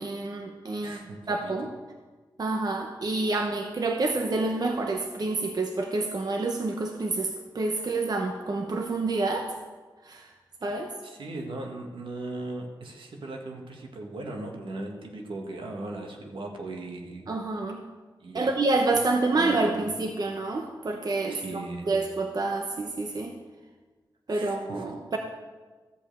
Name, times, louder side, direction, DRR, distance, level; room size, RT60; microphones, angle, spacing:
voice 1, 0.0-1.0 1.3-1.7 2.4-9.5 10.0-10.3 10.6-10.9 17.3-17.8 18.3-23.3 24.3-25.2, right 3 dB, 50° right, 3 dB, 0.9 m, -28 dB
voice 2, 0.8-1.2 1.4-1.5 11.0-17.3 18.2-18.5 19.3-19.9 21.3-21.9 24.3-24.9, right 2 dB, 80° right, 2 dB, 1.7 m, -38 dB
14.0 x 5.2 x 7.6 m, 1.3 s
wide cardioid pair, 80°, 9 cm